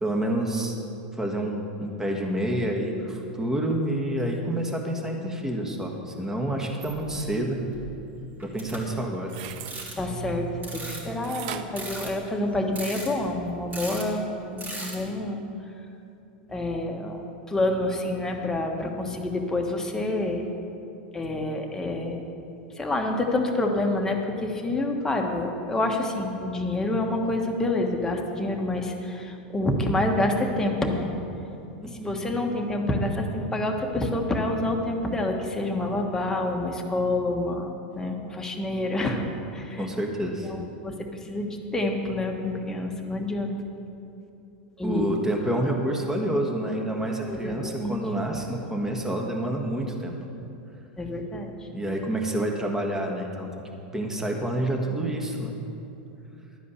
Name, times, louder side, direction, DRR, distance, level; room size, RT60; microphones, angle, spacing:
voice 1, 0.0-0.7 1.2-7.6 8.4-9.3 18.8-18.9 31.8-32.2 39.8-40.5 44.8-50.1 51.7-55.6, right 1 dB, 10° right, 1 dB, 1.4 m, -28 dB
sound 1, 6.8-7.4 7.7-8.0 8.4-9.1 9.7-10.1 10.6-11.3 11.7-12.3 12.8-13.4 13.7-14.0 14.6-15.1, right 2 dB, 30° right, 2.8 m, -38 dB
sound 2, 9.2-9.9 11.2-12.8 13.3-13.4, right 9 dB, 60° right, 0.6 m, -39 dB
voice 2, 10.0-15.4 16.5-17.2 17.5-20.5 21.1-22.2 22.7-31.1 31.8-39.9 40.4-40.9 41.2-43.5 44.8-45.3 47.3-48.0 51.0-51.7, left 2 dB, 10° left, 1 dB, 1.3 m, -28 dB
11.0 x 5.0 x 8.3 m, 2.8 s
hypercardioid pair, 110°, 5 cm